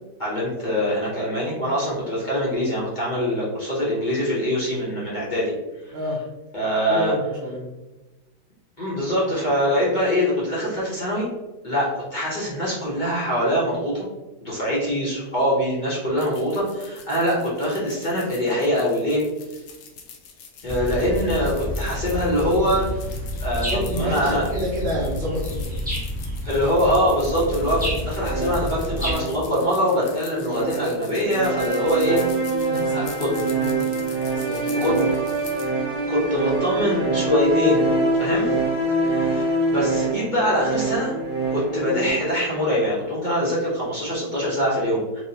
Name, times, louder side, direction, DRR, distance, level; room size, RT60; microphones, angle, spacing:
voice 1, 0.2-5.5 5.8-6.0 6.5-7.1 8.8-11.3 11.6-14.1 14.4-19.2 20.6-23.1 23.4-24.4 26.4-32.2 32.9-33.3 34.8-35.0 36.1-37.8 38.2-38.5 39.0-41.1 41.5-45.2, equal, 40° left, -8 dB, 0.7 m, -23 dB
voice 2, 5.9-6.2 6.9-7.7 23.7-25.8 32.6-34.0 34.3-35.0 35.3-35.4, equal, 85° right, -2 dB, 0.5 m, -29 dB
sound 1, 16.2-35.7, left 6 dB, 75° left, 1.2 m, -44 dB
sound 2, 20.7-29.1, equal, 10° right, 0.4 m, -29 dB
sound 3, 28.2-42.1, right 2 dB, 50° right, 2.1 m, -25 dB
4.5 x 2.1 x 2.7 m, 1.1 s
omnidirectional pair, 1.9 m